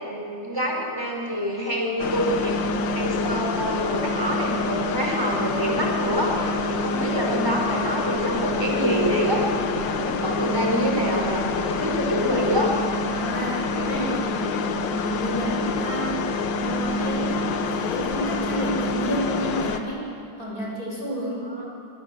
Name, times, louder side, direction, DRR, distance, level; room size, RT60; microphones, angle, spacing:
voice 1, 0.0-12.7 21.4-21.6, equal, 10° right, -1 dB, 5.0 m, -26 dB
sound 1, 2.0-19.8, left 3 dB, 70° left, 1.8 m, -26 dB
voice 2, 13.1-14.4 14.8-16.2 16.5-20.0 20.4-21.7, equal, 45° left, -3 dB, 7.0 m, -30 dB
25.5 x 21.5 x 7.7 m, 2.7 s
omnidirectional pair, 2.2 m